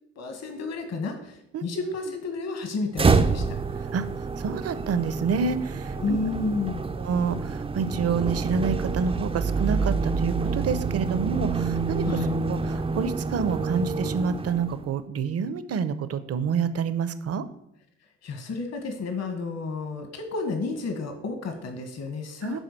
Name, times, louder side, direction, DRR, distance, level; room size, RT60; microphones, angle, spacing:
voice 1, 0.1-3.4 6.0-6.8 12.0-12.4 18.2-22.6, left 3 dB, 60° left, 5 dB, 1.6 m, -31 dB
sound 1, 2.9-14.9, right 4 dB, 20° right, 0.5 m, -27 dB
voice 2, 4.4-6.2 7.0-12.2 12.5-17.4 22.4-22.6, right 6 dB, 55° right, 12 dB, 0.8 m, -28 dB
9.2 x 3.9 x 6.7 m, 0.79 s
cardioid pair, 90°, 30 cm